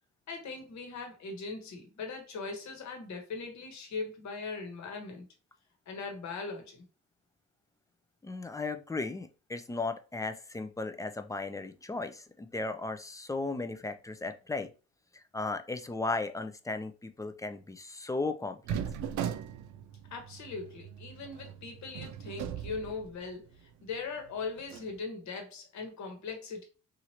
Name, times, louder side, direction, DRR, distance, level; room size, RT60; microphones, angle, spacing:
voice 1, 0.3-5.3 5.9-6.8 20.1-26.6, left 4 dB, 70° left, 1.1 m, -40 dB
voice 2, 8.2-14.7 15.1-18.8, left 3 dB, 10° left, 0.3 m, -36 dB
sound 1, 18.7-23.5 23.9-24.0 24.6-24.9, right 9 dB, 70° right, 0.4 m, -39 dB
3.0 x 2.5 x 2.8 m
cardioid pair, 90°, 30 cm